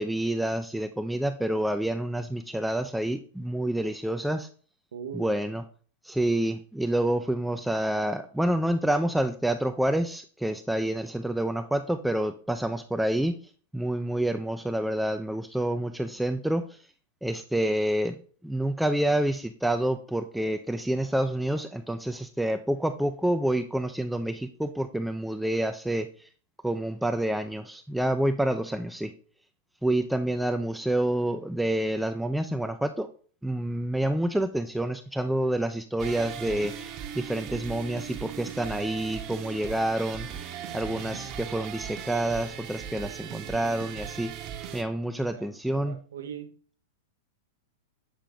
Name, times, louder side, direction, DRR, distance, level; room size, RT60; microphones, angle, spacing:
voice 1, 0.0-4.5 5.1-5.6 6.0-13.4 13.7-16.8 17.2-18.2 18.4-26.3 26.6-29.1 29.8-33.1 33.4-40.3 40.7-44.3 44.7-46.0, right 1 dB, ahead, 0.4 m, -28 dB
voice 2, 4.9-5.4 45.1-46.5, right 7 dB, 90° right, 0.9 m, -41 dB
sound 1, 36.0-44.8, right 9 dB, 40° right, 0.9 m, -38 dB
7.5 x 3.7 x 3.5 m
hypercardioid pair, 125°, 0 cm